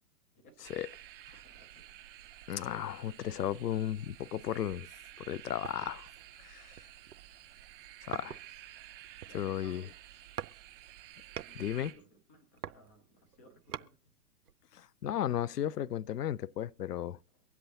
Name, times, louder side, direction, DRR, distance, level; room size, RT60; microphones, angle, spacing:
sound 1, 0.6-11.9, right 14 dB, 35° right, 2.9 m, -52 dB
voice 1, 1.4-1.8 9.2-9.9 11.5-11.6 11.9-14.0, left 1 dB, 10° left, 0.4 m, -59 dB
voice 2, 2.5-4.9 5.2-6.1 6.4-6.7 8.1-8.4 9.3-9.8 11.6-11.9 14.7-17.2, left 11 dB, 75° left, 0.5 m, -35 dB
sound 2, 5.6-6.1 6.7-7.3 8.1-8.7 9.0-9.7 10.4-10.6 10.9-11.6 12.3-13.9 14.4-14.5, right 9 dB, 70° right, 0.6 m, -44 dB
23.5 x 8.1 x 2.8 m
figure-of-eight pair, 120°, 47 cm